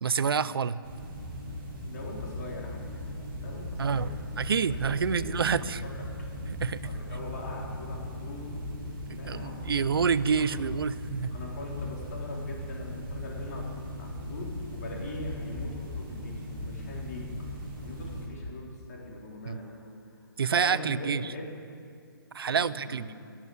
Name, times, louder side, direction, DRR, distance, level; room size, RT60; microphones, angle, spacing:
voice 1, 0.0-0.8 3.8-4.1 4.4-5.8 6.6-6.8 9.1-11.3 19.5-19.6 20.4-21.3 22.3-23.1, right 6 dB, 80° right, 16 dB, 0.5 m, -28 dB
sound 1, 0.8-18.3, left 1 dB, 25° right, 2.8 m, -38 dB
voice 2, 1.8-5.7 6.2-6.3 6.8-9.7 11.3-17.6 17.8-19.9 20.6-21.5 22.4-23.1, left 2 dB, 45° left, -3 dB, 3.9 m, -42 dB
17.0 x 7.4 x 8.0 m, 2.3 s
hypercardioid pair, 165°, 12 cm